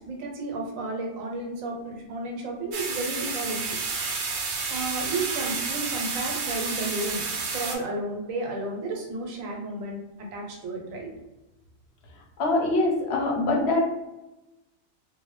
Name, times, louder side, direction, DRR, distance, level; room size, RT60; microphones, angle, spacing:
voice 1, 0.1-3.8 4.7-11.1, right 2 dB, 85° right, 0 dB, 1.1 m, -32 dB
sound 1, 2.7-7.8, right 4 dB, 65° right, 0.8 m, -30 dB
voice 2, 12.4-13.8, left 2 dB, 60° left, -1 dB, 0.8 m, -23 dB
2.6 x 2.1 x 3.0 m, 1.0 s
omnidirectional pair, 1.4 m